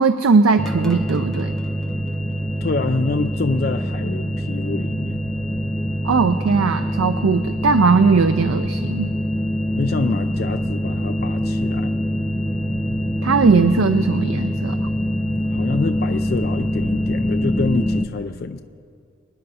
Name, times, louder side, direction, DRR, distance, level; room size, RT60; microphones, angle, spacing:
voice 1, 0.0-1.6 6.0-9.1 13.2-14.8, right 4 dB, 90° right, 10 dB, 0.5 m, -18 dB
sound 1, 0.6-18.0, equal, ahead, 0.7 m, -24 dB
voice 2, 2.6-5.2 9.8-11.9 15.5-18.6, left 3 dB, 50° left, 7 dB, 0.4 m, -26 dB
25.5 x 9.6 x 4.2 m, 2.5 s
head